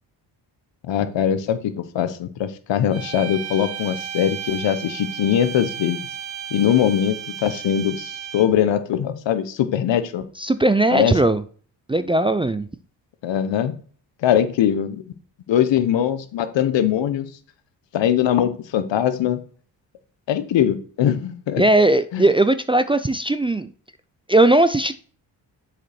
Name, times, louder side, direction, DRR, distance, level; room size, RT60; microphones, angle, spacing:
voice 1, 0.9-6.0 6.5-10.3 10.9-11.2 13.2-13.7 14.2-15.0 15.5-17.3 17.9-19.4 20.3-21.6 22.1-22.2, left 10 dB, 75° left, 1.0 m, -21 dB
sound 1, 2.9-8.7, right 9 dB, 90° right, 1.1 m, -34 dB
voice 2, 10.4-11.4 11.9-12.7 21.6-23.7 24.3-25.1, right 2 dB, 10° right, 0.4 m, -18 dB
7.6 x 5.1 x 4.4 m
cardioid pair, 75°, 44 cm